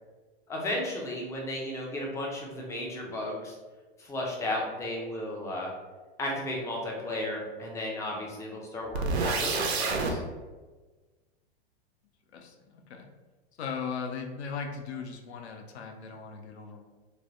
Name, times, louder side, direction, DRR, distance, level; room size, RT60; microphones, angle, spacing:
voice 1, 0.5-3.6 4.0-5.7 6.2-10.2, left 1 dB, 10° left, -1 dB, 0.3 m, -34 dB
sound 1, 8.9-10.1, right 4 dB, 80° right, 0.6 m, -28 dB
voice 2, 12.3-13.1 13.6-16.9, left 5 dB, 85° left, 4 dB, 0.6 m, -38 dB
3.2 x 2.2 x 2.5 m, 1.3 s
hypercardioid pair, 125°, 32 cm